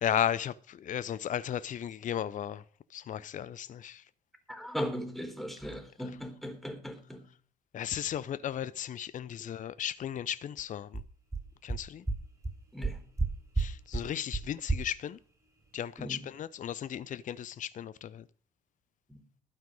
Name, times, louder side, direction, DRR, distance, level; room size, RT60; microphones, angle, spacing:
voice 1, 0.0-2.6 2.9-4.0 7.7-11.0 11.6-12.0 13.6-15.2 15.7-18.3, left 10 dB, 45° left, 0.7 m, -35 dB
voice 2, 4.5-7.3 12.7-13.0 16.0-16.3 19.1-19.2, equal, ahead, 3.9 m, -38 dB
sound 1, 10.6-10.7 10.9-11.0 11.3-11.4 11.7-11.8 12.1-12.2 12.4-12.5 12.8-13.3 13.5-13.7 13.9-14.0 14.3-14.4 14.7-14.8, right 3 dB, 20° right, 5.9 m, -29 dB
12.5 x 9.1 x 6.4 m
hypercardioid pair, 50°, 18 cm